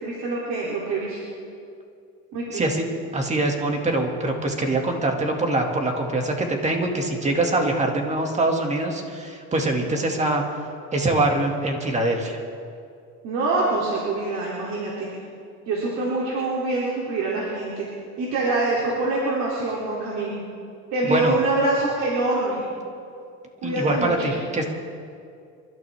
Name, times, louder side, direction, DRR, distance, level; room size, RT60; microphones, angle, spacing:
voice 1, 0.0-1.2 2.3-2.6 13.2-15.1 15.7-17.8 18.2-20.4 20.9-22.6 23.6-24.3, right 2 dB, 65° right, -5 dB, 3.0 m, -25 dB
voice 2, 2.5-2.8 3.1-10.4 10.9-12.4 21.0-21.3 23.6-24.6, right 2 dB, 25° right, 2 dB, 2.2 m, -23 dB
27.5 x 13.0 x 3.5 m, 2.4 s
cardioid pair, 120°, 29 cm